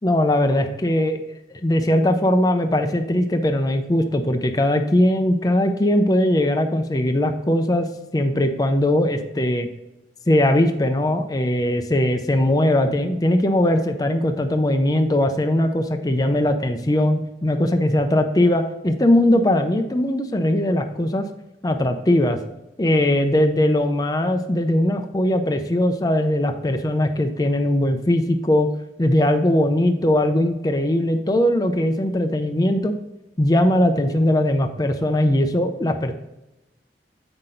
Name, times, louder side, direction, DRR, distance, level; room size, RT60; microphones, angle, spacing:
voice 1, 0.0-1.2 1.5-7.9 8.1-9.7 10.3-21.2 21.6-22.4 22.8-28.7 29.0-32.9 33.4-36.1, left 1 dB, 20° left, 6 dB, 0.5 m, -20 dB
7.9 x 5.8 x 3.8 m, 0.94 s
head